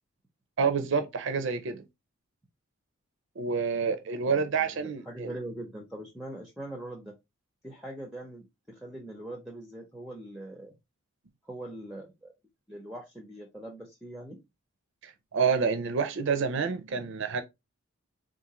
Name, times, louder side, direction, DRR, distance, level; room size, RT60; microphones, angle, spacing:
voice 1, 0.6-1.9 3.4-5.4 15.0-17.4, right 5 dB, 55° right, 0.5 m, -28 dB
voice 2, 4.2-7.2 7.6-10.8 11.4-12.3 12.7-14.4, right 1 dB, ahead, 0.5 m, -42 dB
3.7 x 2.5 x 2.9 m
head